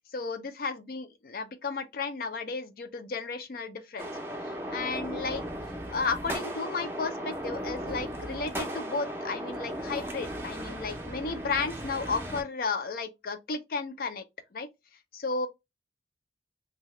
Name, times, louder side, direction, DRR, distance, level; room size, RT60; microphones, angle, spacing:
voice 1, 0.1-4.1 4.4-5.4 5.9-14.2 14.5-14.7 15.1-15.5, left 4 dB, 50° left, 0.4 m, -33 dB
sound 1, 4.0-12.4, equal, 15° right, 0.5 m, -36 dB
2.8 x 2.2 x 3.0 m
head